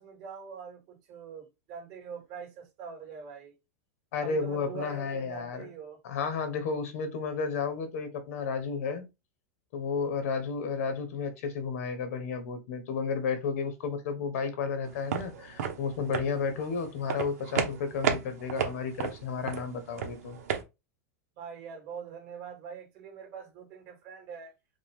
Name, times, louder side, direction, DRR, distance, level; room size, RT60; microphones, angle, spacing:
voice 1, 0.0-3.5 4.2-6.0 21.4-24.5, right 6 dB, 35° right, 2.2 m, -43 dB
voice 2, 4.1-5.7 6.0-9.1 9.7-20.4, left 5 dB, 65° left, 1.2 m, -32 dB
sound 1, 14.9-20.6, right 8 dB, 80° right, 1.1 m, -33 dB
5.1 x 2.5 x 3.7 m
supercardioid pair, 170°, 8 cm